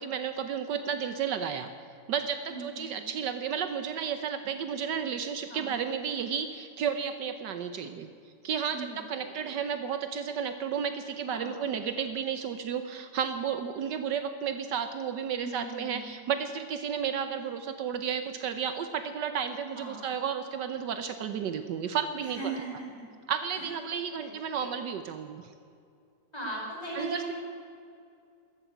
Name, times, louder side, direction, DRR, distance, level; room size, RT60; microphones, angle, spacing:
voice 1, 0.0-1.7 2.1-8.1 8.4-22.5 23.3-25.5 26.9-27.3, right 7 dB, 75° right, 9 dB, 1.4 m, -32 dB
voice 2, 2.5-3.1 5.5-5.7 8.7-9.0 9.4-9.5 11.3-11.6 15.4-16.0 19.7-20.1 22.2-23.0 23.6-23.7 24.2-24.7 26.3-27.3, right 2 dB, 15° left, -4 dB, 5.0 m, -39 dB
13.5 x 13.5 x 7.9 m, 2.4 s
omnidirectional pair, 2.0 m